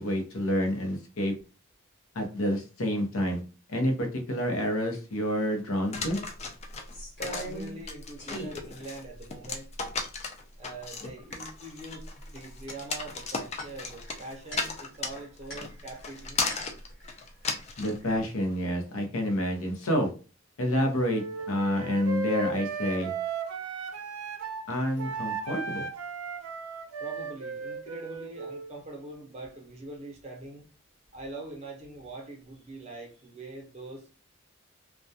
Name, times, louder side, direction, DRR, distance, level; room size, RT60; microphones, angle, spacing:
voice 1, 0.0-1.3 2.1-3.4 3.7-6.2 17.8-20.1 20.6-23.1 24.7-25.9, equal, 80° left, 3 dB, 0.7 m, -28 dB
sound 1, 5.9-18.0, left 4 dB, 30° left, 0.3 m, -35 dB
sound 2, 6.0-6.1 6.4-7.9 8.2-8.6 9.2-9.3 9.5-10.2 11.3-11.7 12.0-17.2 17.5-18.2, equal, 50° left, 1.1 m, -42 dB
voice 2, 7.2-9.7 10.6-16.4 27.0-30.6 31.1-34.1, right 2 dB, 30° right, 1 dB, 0.6 m, -43 dB
Wind instrument woodwind instrument, 21.1-24.6 25.0-28.7, right 4 dB, 85° right, 0.4 m, -35 dB
2.2 x 2.2 x 2.7 m, 0.35 s
head